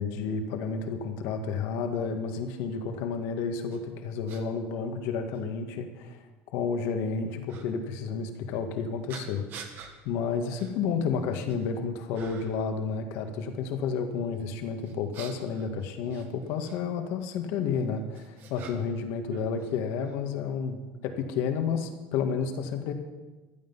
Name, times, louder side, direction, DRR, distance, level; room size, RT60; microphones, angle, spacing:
voice 1, 0.0-6.2 6.5-9.5 10.1-22.9, left 5 dB, 65° left, 6 dB, 1.8 m, -31 dB
sound 1, 3.7-3.8 4.3-4.4 5.3-5.4 7.5-7.7 9.1-9.9 10.5-10.7 11.2-11.7 12.1-12.6 14.8-16.8 17.7-19.0 19.3-20.2, right 7 dB, 45° right, 1.7 m, -46 dB
16.0 x 11.5 x 5.6 m, 1.2 s
cardioid pair, 170°, 5 cm